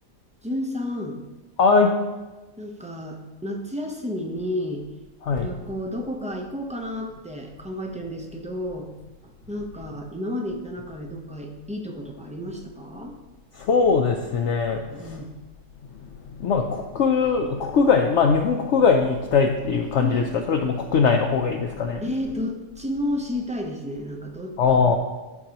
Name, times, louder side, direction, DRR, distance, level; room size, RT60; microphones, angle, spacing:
voice 1, 0.4-1.2 2.6-4.8 5.4-8.9 9.2-13.2 14.9-15.3 20.0-20.2 22.0-24.6, left 1 dB, 10° right, 1 dB, 0.4 m, -31 dB
voice 2, 1.6-1.9 5.2-5.5 13.7-15.2 16.4-22.0 24.6-25.0, left 5 dB, 65° left, 3 dB, 0.8 m, -21 dB
13.5 x 4.7 x 2.9 m, 1.1 s
omnidirectional pair, 1.5 m